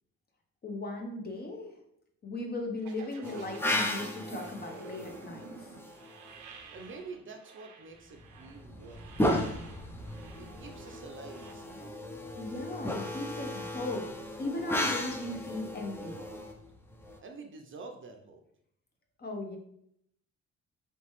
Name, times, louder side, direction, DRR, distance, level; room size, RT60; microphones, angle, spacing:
voice 1, 0.6-1.8 2.2-5.7 12.4-14.1 14.4-16.2 19.2-19.6, left 2 dB, 30° left, 3 dB, 0.8 m, -37 dB
sound 1, 2.8-11.5, right 5 dB, 85° right, 0.6 m, -50 dB
sound 2, 3.2-6.4 8.2-17.2, left 1 dB, 10° left, 0.5 m, -35 dB
voice 2, 6.7-9.8 10.4-11.9 17.2-18.4, right 4 dB, 40° right, 4 dB, 0.5 m, -48 dB
3.2 x 3.0 x 3.0 m, 0.72 s
cardioid pair, 90°, 30 cm